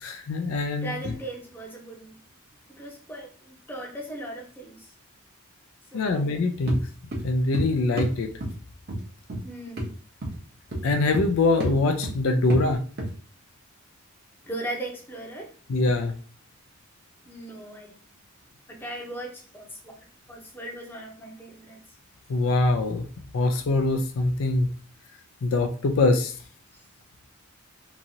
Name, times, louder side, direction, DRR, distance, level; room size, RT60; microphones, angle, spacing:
voice 1, 0.0-0.9 5.9-6.8 7.2-8.3 10.8-12.8 15.7-16.1 22.3-23.0 23.3-24.7 25.4-26.3, left 2 dB, 70° left, 5 dB, 0.4 m, -23 dB
voice 2, 0.8-2.2 2.8-4.9 5.9-6.3 9.4-9.9 14.4-15.5 17.3-17.9 18.7-20.0 20.3-21.8, right 1 dB, 10° left, -1 dB, 0.7 m, -38 dB
sound 1, 6.7-6.8 7.1-7.7 8.0-8.2 8.4-8.6 8.9-9.0 9.3-9.4 9.8-9.9 10.2-10.4 10.7-11.3 11.6-11.8 12.0-12.2 12.5-12.7 13.0-13.1, right 1 dB, 50° right, 0.8 m, -29 dB
2.9 x 2.5 x 2.7 m, 0.41 s
head